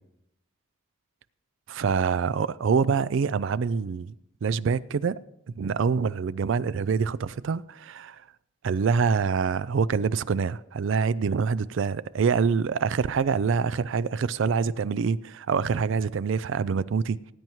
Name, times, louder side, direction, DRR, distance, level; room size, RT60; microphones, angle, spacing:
voice 1, 1.7-4.1 4.4-5.2 5.6-8.2 8.6-17.2, right 5 dB, 60° right, 0.3 m, -25 dB
19.0 x 9.1 x 3.1 m
head